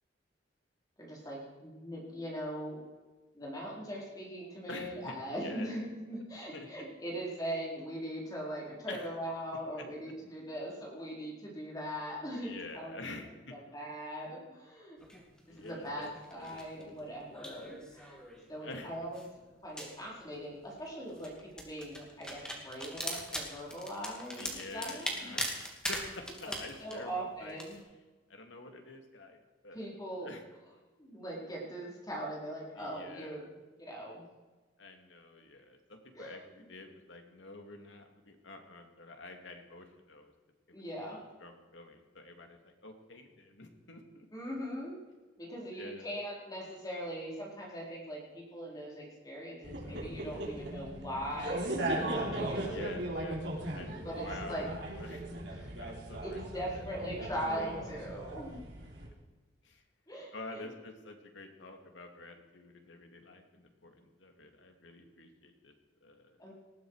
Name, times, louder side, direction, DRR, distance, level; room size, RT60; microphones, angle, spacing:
voice 1, 1.0-2.8 3.3-12.5 12.7-13.1 13.5-15.0 15.6-18.2 18.5-19.2 19.6-25.4 26.8-27.8 29.7-30.3 31.0-33.4 33.8-34.3 36.1-36.4 40.7-41.2 44.3-44.9 45.4-52.8 54.0-54.7 55.6-55.7 56.2-58.6 60.1-60.7 66.4-66.5, equal, 20° left, -4 dB, 4.4 m, -40 dB
voice 2, 4.7-5.7 6.5-6.7 8.9-9.1 9.8-9.9 12.4-13.5 15.5-16.1 16.4-17.1 18.6-19.0 24.4-25.5 25.9-27.6 28.3-29.9 30.2-30.4 32.7-33.4 34.8-40.3 40.7-40.8 41.4-44.3 45.7-46.1 52.6-53.5 53.7-55.2 55.7-56.4 56.7-57.3 59.6-59.8 60.3-65.7 66.0-66.5, left 2 dB, 80° left, 4 dB, 2.5 m, -48 dB
sound 1, 15.0-27.8, equal, 5° left, 2.5 m, -42 dB
sound 2, 49.6-59.1, right 1 dB, 65° right, 3.8 m, -38 dB
19.5 x 14.5 x 4.9 m, 1.2 s
head